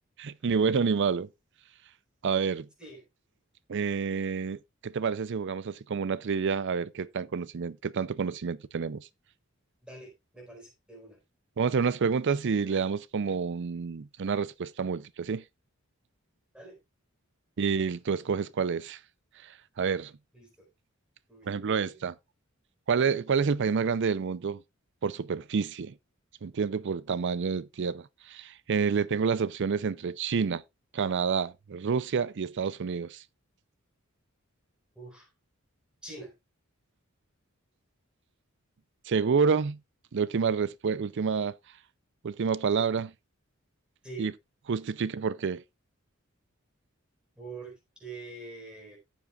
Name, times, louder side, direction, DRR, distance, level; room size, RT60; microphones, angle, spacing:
voice 1, 0.2-1.3 2.2-2.7 3.7-9.1 11.6-15.4 17.6-19.0 19.8-20.1 21.4-22.1 22.9-24.6 25.0-25.9 26.4-30.6 30.9-33.2 39.1-39.8 40.1-41.6 42.2-43.1 44.2-44.3 44.7-45.6, right 5 dB, 60° right, 0.5 m, -28 dB
voice 2, 9.8-11.2 16.5-16.8 20.3-20.7 21.3-22.0 35.0-35.3 36.0-36.3 44.0-44.3 47.4-49.0, right 3 dB, 5° right, 4.3 m, -45 dB
14.5 x 7.4 x 2.4 m
head